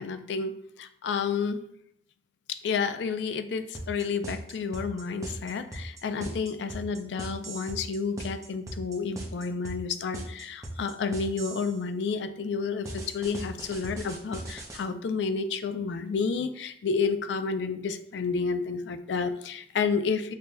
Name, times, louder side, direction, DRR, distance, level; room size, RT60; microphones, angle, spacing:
voice 1, 0.0-1.6 2.5-20.3, left 5 dB, 90° left, 9 dB, 0.4 m, -30 dB
sound 1, 3.8-11.8 12.9-14.8, right 1 dB, 20° right, 0.6 m, -38 dB
6.4 x 2.2 x 2.6 m, 0.69 s
head